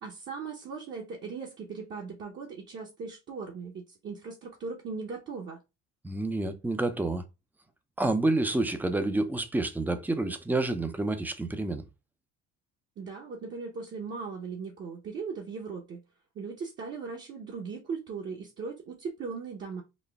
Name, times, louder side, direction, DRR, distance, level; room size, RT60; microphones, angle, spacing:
voice 1, 0.0-5.6 13.0-16.0 16.3-19.8, right 5 dB, 40° right, 0.8 m, -38 dB
voice 2, 6.0-7.2 8.0-11.8, right 2 dB, 5° right, 0.4 m, -28 dB
4.1 x 2.1 x 3.3 m
cardioid pair, 120°, 31 cm